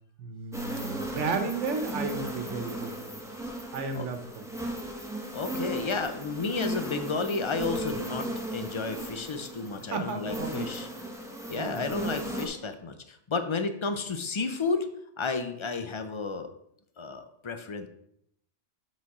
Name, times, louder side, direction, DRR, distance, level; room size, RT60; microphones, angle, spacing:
voice 1, 0.2-3.1 3.7-4.4 9.8-10.7 11.5-11.8, right 4 dB, 80° right, 7 dB, 1.2 m, -33 dB
sound 1, 0.5-12.5, right 1 dB, 5° right, 0.8 m, -36 dB
voice 2, 5.3-10.9 11.5-14.9 15.2-16.5 17.0-17.9, left 4 dB, 55° left, 8 dB, 0.3 m, -32 dB
7.3 x 4.0 x 4.7 m, 0.72 s
omnidirectional pair, 1.2 m